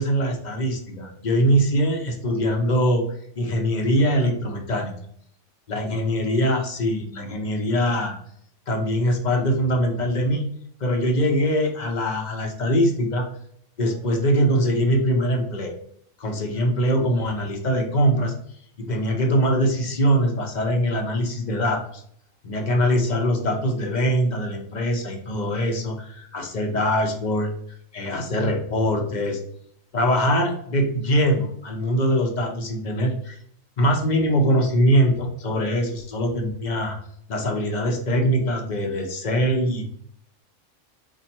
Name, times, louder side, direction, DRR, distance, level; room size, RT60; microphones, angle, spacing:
voice 1, 0.0-3.1 3.4-4.9 5.7-8.1 8.7-10.5 10.8-13.2 13.8-15.7 16.2-18.3 18.8-22.0 22.4-27.5 27.9-29.4 29.9-33.4 33.8-37.0 37.3-39.9, equal, 40° left, 2 dB, 0.7 m, -22 dB
4.3 x 2.6 x 4.3 m, 0.66 s
omnidirectional pair, 1.4 m